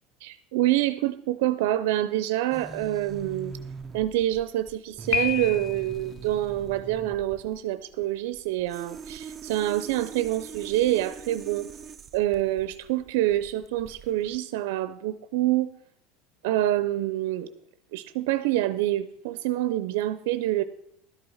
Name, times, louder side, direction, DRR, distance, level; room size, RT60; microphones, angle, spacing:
voice 1, 0.2-3.5 3.9-11.7 12.1-15.7 16.4-17.5 17.9-20.6, right 14 dB, 75° right, 13 dB, 0.6 m, -26 dB
sound 1, 2.5-14.4, right 5 dB, 20° right, 0.6 m, -43 dB
Piano, 5.1-6.1, left 10 dB, 65° left, 0.8 m, -29 dB
12.5 x 7.8 x 5.6 m, 0.74 s
supercardioid pair, 140°, 0 cm